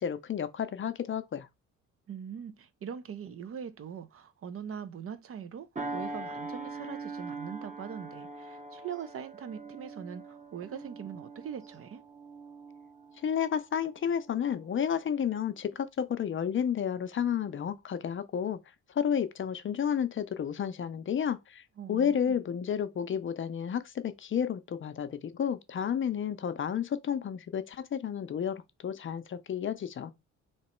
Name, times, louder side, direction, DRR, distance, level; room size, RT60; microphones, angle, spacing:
voice 1, 0.0-1.5 13.2-18.6 18.9-21.6 21.9-30.1, left 8 dB, 40° left, 0.6 m, -31 dB
voice 2, 2.1-12.0 21.8-22.4, right 8 dB, 50° right, 0.6 m, -42 dB
sound 1, 5.8-14.6 15.1-15.3, right 3 dB, 25° right, 0.9 m, -42 dB
3.0 x 2.9 x 4.4 m
cardioid pair, 90°, 30 cm